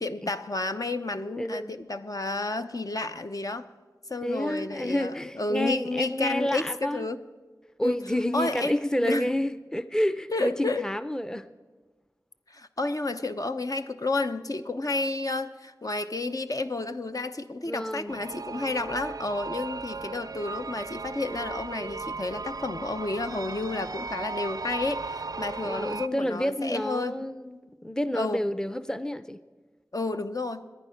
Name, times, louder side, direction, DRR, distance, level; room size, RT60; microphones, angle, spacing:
voice 1, 0.0-3.7 4.1-7.2 7.8-8.0 8.3-9.3 10.3-10.9 12.5-27.2 28.1-28.4 29.9-30.6, left 2 dB, 55° left, 8 dB, 0.7 m, -31 dB
voice 2, 1.4-1.7 4.2-7.0 7.8-11.5 17.7-18.2 25.6-29.4, equal, 10° left, 12 dB, 0.6 m, -29 dB
sound 1, 18.1-26.1, right 4 dB, 65° right, 0.4 m, -36 dB
19.0 x 10.5 x 5.8 m, 1.3 s
wide cardioid pair, 45°, 7 cm